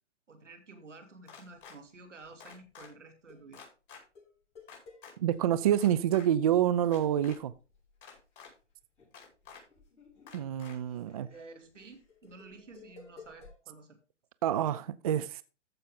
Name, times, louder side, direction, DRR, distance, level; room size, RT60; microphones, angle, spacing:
voice 1, 0.3-3.6 11.1-14.0, right 3 dB, 85° right, 6 dB, 2.9 m, -52 dB
sound 1, 1.3-1.8 2.4-2.9 3.5-4.0 4.7-5.1 5.7-6.3 6.8-7.4 8.0-8.5 9.1-9.6 10.3-10.7, left 6 dB, 45° left, 5.2 m, -50 dB
sound 2, 1.4-1.7 2.2-2.3 2.8-3.0 3.3-3.5 4.2-5.7 6.1-6.2 6.7-8.5 8.8-13.6, left 3 dB, 15° left, 6.8 m, -56 dB
voice 2, 5.2-7.5 10.3-11.3 14.4-15.4, right 10 dB, 35° right, 15 dB, 0.4 m, -27 dB
14.5 x 5.7 x 3.7 m, 0.33 s
hypercardioid pair, 135°, 36 cm